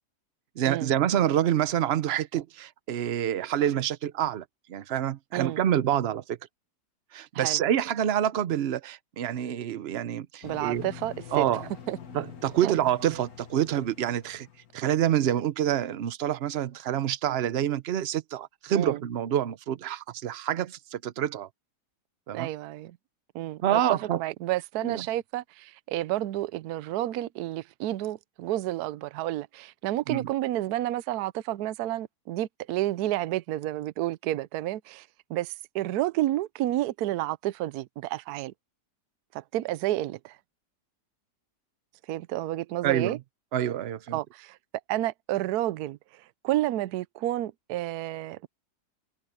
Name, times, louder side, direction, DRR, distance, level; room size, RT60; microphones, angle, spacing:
voice 1, 0.6-6.4 7.1-10.8 11.3-11.7 12.1-14.5 14.7-21.5 22.3-22.5 23.6-24.2 24.8-25.0 30.1-30.3 42.8-43.2 43.5-44.2, right 10 dB, 55° right, 0.7 m, -27 dB
sound 1, 10.4-14.9, left 8 dB, 60° left, 1.9 m, -45 dB
voice 2, 10.4-11.5 11.9-12.0 12.6-12.7 18.7-19.0 22.3-23.0 23.3-38.5 39.3-40.4 42.1-43.2 44.1-44.6 44.9-48.5, right 15 dB, 75° right, 1.1 m, -30 dB
omnidirectional pair, 1.8 m